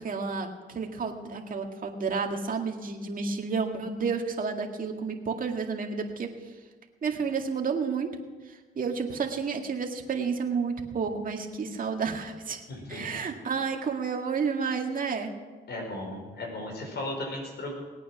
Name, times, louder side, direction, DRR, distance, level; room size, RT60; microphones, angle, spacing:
voice 1, 0.0-6.6 7.0-8.1 8.5-12.6 12.9-15.3, right 5 dB, 45° right, 3 dB, 2.0 m, -31 dB
voice 2, 12.7-13.2 15.7-17.7, left 1 dB, 60° left, 1 dB, 5.3 m, -36 dB
19.5 x 9.0 x 6.1 m, 1.4 s
cardioid pair, 90°, 20 cm